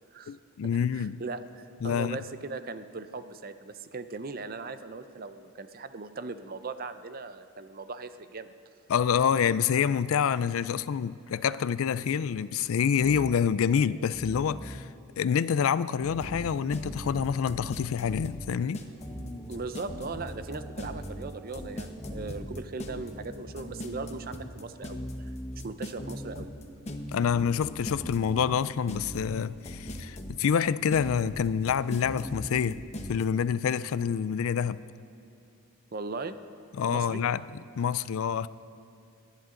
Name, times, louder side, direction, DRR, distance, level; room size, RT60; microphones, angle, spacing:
voice 1, 0.3-1.2 1.8-2.2 8.9-14.9 15.2-18.8 27.1-32.8 33.1-34.8 36.8-37.4 37.8-38.5, left 7 dB, 65° left, 0.3 m, -27 dB
voice 2, 0.9-8.5 19.5-26.5 35.9-36.4 36.9-37.2, right 3 dB, 40° right, 0.6 m, -39 dB
sound 1, 12.7-23.5, equal, ahead, 0.9 m, -47 dB
sound 2, 16.2-33.2, equal, 30° left, 1.0 m, -39 dB
30.0 x 10.5 x 3.8 m
head